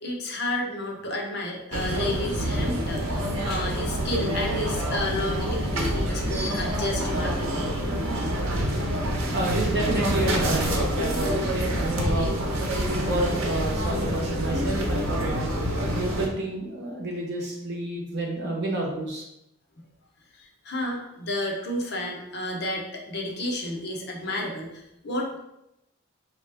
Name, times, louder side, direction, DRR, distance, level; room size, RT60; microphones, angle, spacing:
voice 1, 0.0-7.6 20.4-25.4, left 1 dB, 50° left, 0 dB, 0.8 m, -31 dB
sound 1, 1.7-16.3, equal, 80° right, 0.8 m, -27 dB
voice 2, 9.3-12.3 12.8-15.5 15.9-19.2, right 1 dB, 55° right, -1 dB, 1.0 m, -30 dB
4.2 x 3.0 x 3.4 m, 0.85 s
head